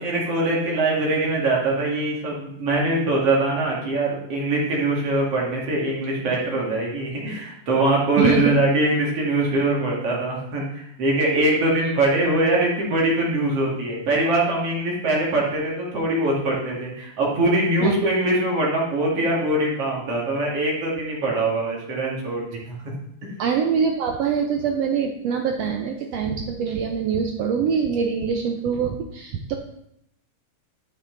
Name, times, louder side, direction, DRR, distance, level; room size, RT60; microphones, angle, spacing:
voice 1, 0.0-22.7 23.2-23.3, right 2 dB, 50° right, -3 dB, 3.0 m, -22 dB
voice 2, 8.2-8.5 17.8-17.9 23.4-29.5, right 6 dB, 75° right, 3 dB, 1.5 m, -24 dB
12.5 x 5.9 x 3.9 m, 0.79 s
omnidirectional pair, 3.6 m